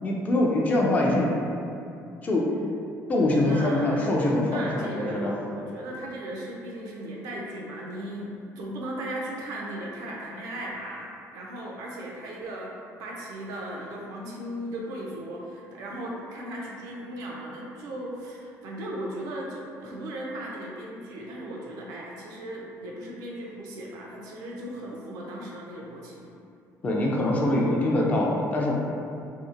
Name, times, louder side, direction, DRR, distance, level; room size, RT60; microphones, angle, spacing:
voice 1, 0.0-1.3 2.2-2.5 3.1-5.3 26.8-28.7, left 1 dB, 25° left, -3 dB, 0.3 m, -24 dB
voice 2, 3.4-4.0 4.5-12.7 13.0-26.3, right 1 dB, 75° right, -2 dB, 0.4 m, -37 dB
2.7 x 2.0 x 2.4 m, 2.5 s
cardioid pair, 145°, 6 cm